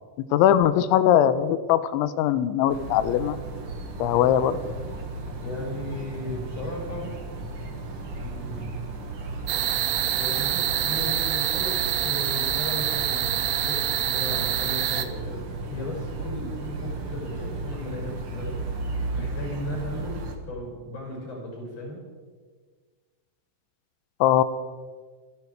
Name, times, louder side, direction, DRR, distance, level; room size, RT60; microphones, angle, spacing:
voice 1, 0.3-3.4 4.0-4.7 24.2-24.4, left 10 dB, 90° left, 13 dB, 3.1 m, -21 dB
sound 1, 2.7-20.3, right 3 dB, 55° right, 1.6 m, -35 dB
voice 2, 5.4-7.1 8.2-8.7 10.1-15.4 15.7-18.6 19.1-22.0, left 1 dB, 35° left, -1 dB, 6.7 m, -36 dB
sound 2, 9.5-15.1, right 11 dB, 75° right, 2.7 m, -26 dB
28.0 x 11.0 x 4.7 m, 1.5 s
omnidirectional pair, 5.3 m